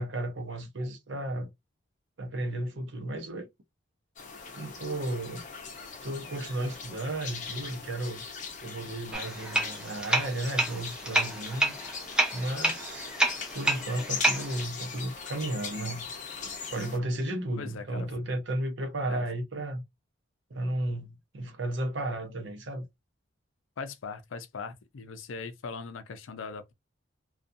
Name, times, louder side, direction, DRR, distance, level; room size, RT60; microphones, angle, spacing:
voice 1, 0.0-1.5 2.2-3.5 4.5-5.4 6.0-8.2 8.6-11.7 12.3-13.1 13.5-16.1 16.7-19.8 20.5-22.8, right 1 dB, 70° right, 0.7 m, -33 dB
sound 1, 4.2-17.0, left 5 dB, 40° left, 0.6 m, -40 dB
sound 2, 9.1-14.6, right 1 dB, 5° right, 0.4 m, -29 dB
voice 2, 17.6-18.1 19.1-19.2 23.8-26.7, left 5 dB, 80° left, 0.5 m, -40 dB
2.4 x 2.3 x 2.6 m
head